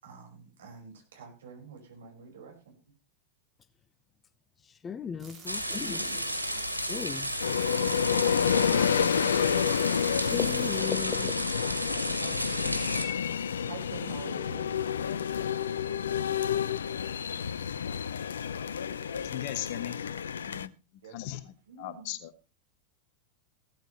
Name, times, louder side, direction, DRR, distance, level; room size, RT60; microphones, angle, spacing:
voice 1, 0.0-2.8 5.7-6.8 7.8-8.0 8.9-9.4 11.9-12.4 13.7-14.8 21.0-21.2 21.7-22.1, right 4 dB, 65° right, 5.3 m, -47 dB
voice 2, 4.8-6.0 6.9-7.3 8.7-9.7 10.3-11.4, left 7 dB, 20° left, 0.8 m, -36 dB
sound 1, 5.2-10.8, right 4 dB, 20° right, 4.5 m, -50 dB
sound 2, 5.5-13.0, equal, 90° left, 2.2 m, -33 dB
sound 3, 7.4-20.7, left 8 dB, 65° left, 0.6 m, -29 dB
voice 3, 19.1-19.9 20.5-20.7 21.1-21.4 21.8-22.3, left 14 dB, 45° left, 1.4 m, -37 dB
16.5 x 13.5 x 3.2 m
figure-of-eight pair, 90°, 0 cm